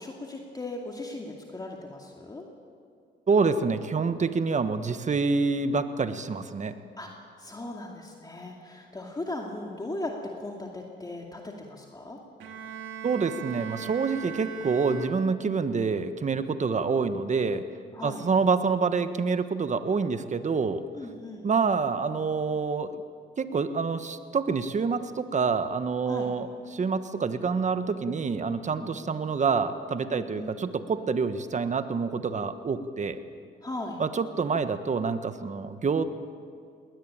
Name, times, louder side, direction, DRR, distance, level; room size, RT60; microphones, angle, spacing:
voice 1, 0.0-2.5 7.0-7.1 7.4-12.2 17.9-18.2 20.9-21.5 26.0-26.3 28.8-28.9 30.1-30.5 33.6-34.0, left 2 dB, 20° left, 0 dB, 2.4 m, -38 dB
voice 2, 3.3-6.7 13.0-17.6 18.0-20.8 21.4-23.0 23.4-33.2 34.0-36.0, right 5 dB, 35° right, 10 dB, 1.4 m, -27 dB
Bowed string instrument, 12.4-15.6, right 7 dB, 85° right, 2.1 m, -40 dB
20.0 x 19.5 x 8.9 m, 2.3 s
cardioid pair, 90°, 20 cm